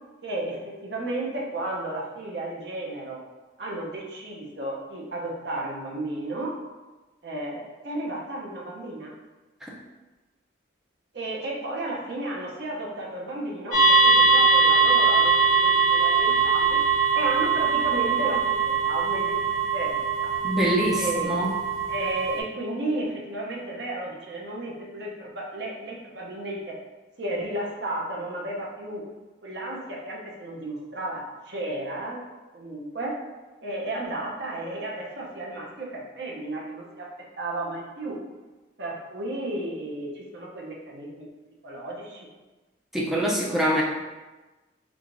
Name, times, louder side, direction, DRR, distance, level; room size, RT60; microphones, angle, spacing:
voice 1, 0.2-3.2 3.6-6.5 7.2-9.1 11.1-16.8 17.1-18.6 18.8-20.3 20.9-21.4 21.9-26.8 27.2-29.0 29.4-32.2 32.5-33.2 33.6-37.1 37.4-38.2 38.8-41.3 41.6-42.3, right 1 dB, 55° right, -2 dB, 0.7 m, -33 dB
sound 1, 13.7-22.4, right 5 dB, 45° left, 0.8 m, -21 dB
voice 2, 20.4-21.5 42.9-43.8, equal, ahead, -5 dB, 0.4 m, -24 dB
4.6 x 2.4 x 2.5 m, 1.2 s
head